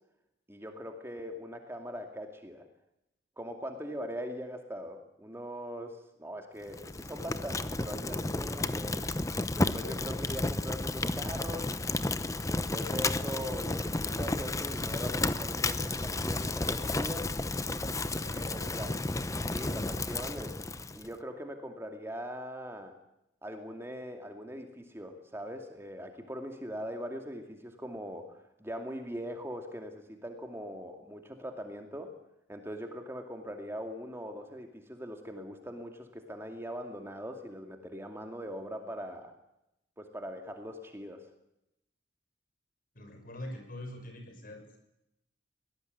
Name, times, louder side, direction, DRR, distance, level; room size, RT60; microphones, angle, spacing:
voice 1, 0.5-2.7 3.4-9.1 9.5-11.7 12.5-17.4 18.5-18.9 19.3-20.6 20.9-23.0 23.4-32.1 32.5-39.3 40.0-41.2, equal, 15° right, 4 dB, 2.4 m, -41 dB
Fire, 6.7-21.1, left 2 dB, 15° left, 0.8 m, -32 dB
voice 2, 17.9-18.9 42.9-44.8, left 1 dB, 50° left, 5 dB, 6.7 m, -45 dB
23.0 x 19.0 x 9.3 m, 0.85 s
head